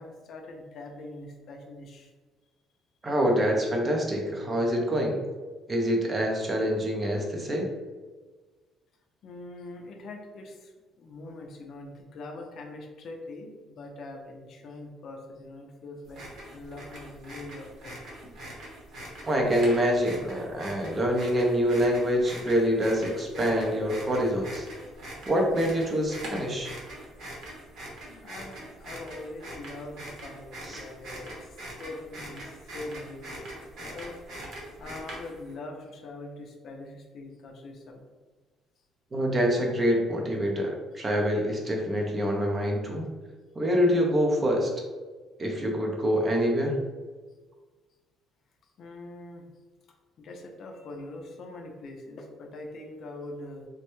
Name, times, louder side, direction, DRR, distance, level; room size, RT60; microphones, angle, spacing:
voice 1, 0.0-2.1 9.2-10.7 11.0-16.2 16.5-18.0 28.1-34.1 34.8-38.1 48.8-49.5 50.2-53.7, left 2 dB, 45° left, 2 dB, 0.4 m, -43 dB
voice 2, 3.0-5.2 5.7-7.7 19.2-24.7 25.2-26.7 30.6-30.8 39.1-43.1 43.6-44.7 45.4-46.8, equal, 25° right, 0 dB, 0.5 m, -26 dB
sound 1, 16.1-35.5, right 1 dB, 60° right, 0.9 m, -43 dB
3.2 x 2.2 x 3.0 m, 1.4 s
cardioid pair, 155°, 0 cm